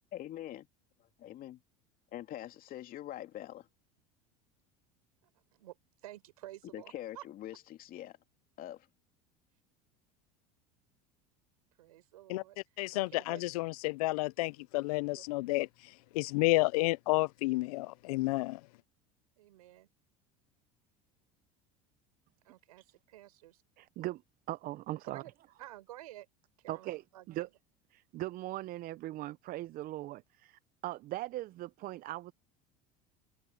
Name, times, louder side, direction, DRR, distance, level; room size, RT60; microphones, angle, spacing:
voice 1, 0.1-0.6 1.2-1.6 2.1-3.7 6.7-8.2 8.6-8.9, left 13 dB, 50° left, 2.7 m, -44 dB
voice 2, 6.0-7.2 11.8-12.6 12.9-13.5 15.1-15.2 19.4-19.9 22.4-23.6 25.1-25.3 25.6-26.3 26.6-27.5, right 15 dB, 90° right, 4.9 m, -51 dB
voice 3, 12.8-18.6, left 21 dB, 80° left, 0.6 m, -31 dB
voice 4, 23.8-24.2 24.5-25.2 26.7-27.0 27.3-27.5 27.9-32.3, right 16 dB, 50° right, 0.6 m, -39 dB
supercardioid pair, 95°, 19 cm